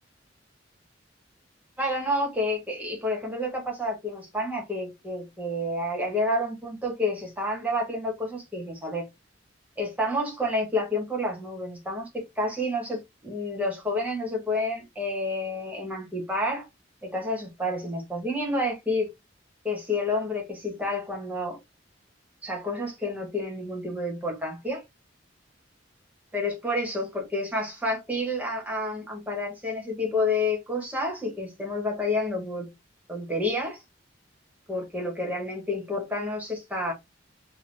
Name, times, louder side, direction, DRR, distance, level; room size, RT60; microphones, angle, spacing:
voice 1, 1.8-9.1 9.8-12.1 12.4-16.7 17.0-19.1 19.6-21.6 22.4-24.8 26.3-32.7 33.1-33.8 34.7-36.9, left 1 dB, 10° right, 1.6 m, -29 dB
3.6 x 2.6 x 3.5 m
head